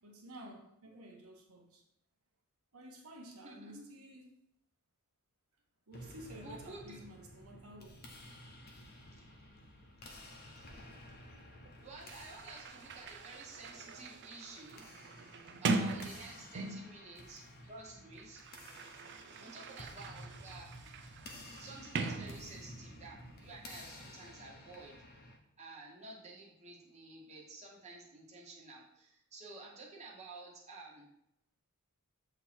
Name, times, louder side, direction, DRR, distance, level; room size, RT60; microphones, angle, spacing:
voice 1, 0.0-1.8 2.7-4.3 5.9-7.9, right 1 dB, 70° right, 1.2 m, -52 dB
voice 2, 3.4-3.8 6.4-7.0 10.1-10.2 11.8-14.9 15.6-18.4 19.4-21.0 21.6-25.0 25.6-31.1, right 3 dB, 30° right, 1.4 m, -51 dB
sound 1, 5.9-25.4, left 1 dB, 45° left, 0.9 m, -53 dB
Sliding door, 11.6-11.7 12.0-17.0 17.9-22.9, right 3 dB, 55° right, 0.5 m, -41 dB
7.2 x 3.0 x 4.4 m
head